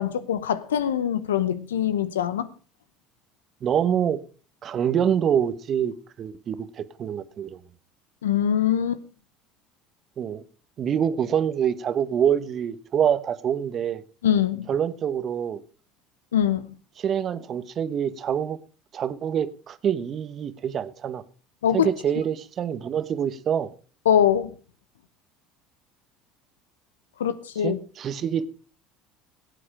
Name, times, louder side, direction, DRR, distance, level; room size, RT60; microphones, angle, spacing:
voice 1, 0.0-2.5 8.2-9.0 14.2-14.7 16.3-16.8 21.6-21.9 24.1-24.5 27.2-27.8, left 9 dB, 85° left, 0.8 m, -23 dB
voice 2, 3.6-4.2 4.6-7.6 10.2-10.4 10.8-14.0 14.7-15.6 17.0-18.6 18.9-21.2 21.7-23.7 27.6-28.5, right 8 dB, 45° right, 1.1 m, -26 dB
17.0 x 8.4 x 5.0 m
hypercardioid pair, 70°, 0 cm